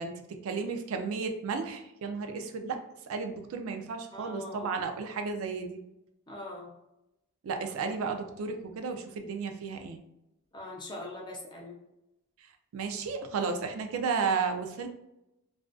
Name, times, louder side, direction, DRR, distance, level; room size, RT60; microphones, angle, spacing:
voice 1, 0.0-2.8 3.1-5.8 7.4-10.0 12.7-14.9, right 5 dB, 70° right, 5 dB, 0.3 m, -33 dB
voice 2, 4.1-4.8 6.3-6.7 10.5-11.7, left 1 dB, 20° left, -1 dB, 0.5 m, -42 dB
2.4 x 2.3 x 2.2 m, 0.89 s
head